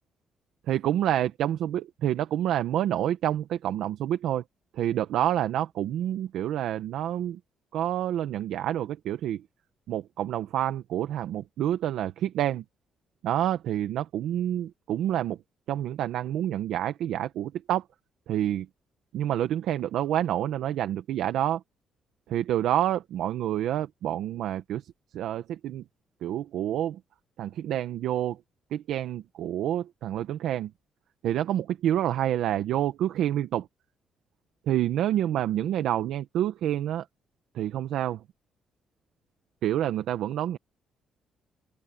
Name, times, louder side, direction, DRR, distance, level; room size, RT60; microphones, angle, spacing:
voice 1, 0.7-4.4 4.7-7.4 7.7-9.4 9.9-12.6 13.2-15.4 15.7-17.8 18.3-18.7 19.1-21.6 22.3-25.8 26.2-27.0 27.4-28.4 28.7-30.7 31.2-33.7 34.7-37.0 37.5-38.2 39.6-40.6, right 11 dB, 80° right, 1.2 m, -28 dB
open air
cardioid pair, 90°, 0 cm